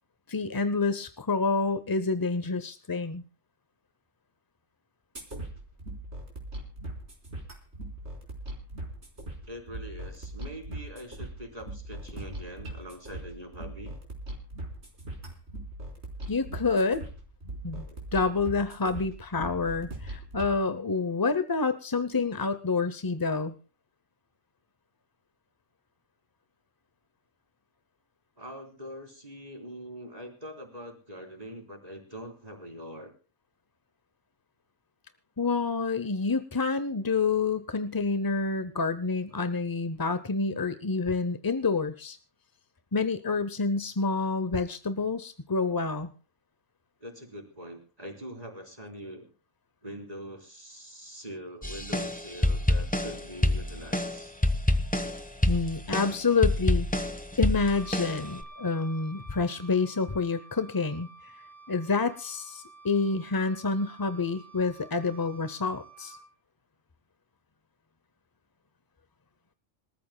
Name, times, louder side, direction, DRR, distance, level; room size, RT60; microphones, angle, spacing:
voice 1, 0.3-3.2 16.3-17.1 17.6-17.9 18.1-23.5 35.4-42.2 42.9-46.1 55.5-56.9 57.4-61.3 61.7-66.2, left 4 dB, 25° left, 11 dB, 0.5 m, -28 dB
sound 1, 5.2-20.6, right 1 dB, 60° right, 4.4 m, -40 dB
voice 2, 9.5-14.0 17.8-18.1 28.4-33.1 47.0-49.3 49.8-54.3, equal, 30° right, 2 dB, 4.0 m, -43 dB
sound 2, 51.6-58.4, left 1 dB, 5° left, 1.0 m, -27 dB
Wind instrument woodwind instrument, 57.6-66.2, right 3 dB, 70° left, 7.4 m, -50 dB
26.5 x 14.0 x 2.2 m, 0.35 s
omnidirectional pair, 1.3 m